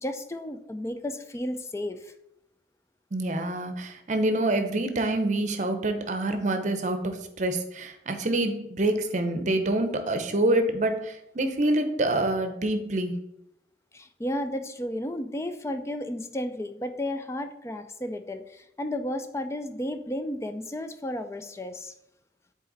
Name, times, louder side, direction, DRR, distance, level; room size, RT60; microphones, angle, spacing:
voice 1, 0.0-2.1 13.9-21.9, left 1 dB, 15° left, 0.4 m, -33 dB
voice 2, 3.1-13.2, right 1 dB, 45° right, 0.8 m, -26 dB
7.6 x 4.1 x 4.0 m
head